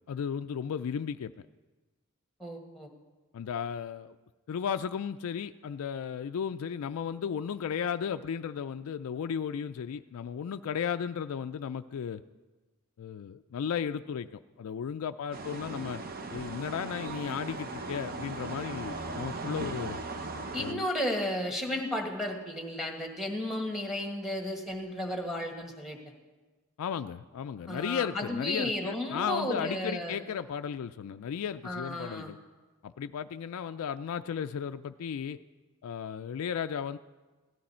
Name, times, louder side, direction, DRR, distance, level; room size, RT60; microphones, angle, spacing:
voice 1, 0.1-1.3 3.3-4.1 4.5-12.2 13.0-16.0 16.3-20.0 20.6-20.9 26.8-32.4 32.8-35.4 35.8-37.0, left 7 dB, 75° left, 9 dB, 0.3 m, -35 dB
voice 2, 2.4-2.9 20.5-26.0 27.7-30.2 31.6-32.3, left 1 dB, ahead, 2 dB, 1.6 m, -33 dB
sound 1, 15.3-20.7, right 3 dB, 40° right, 0.7 m, -38 dB
17.0 x 13.0 x 4.3 m, 1.3 s
head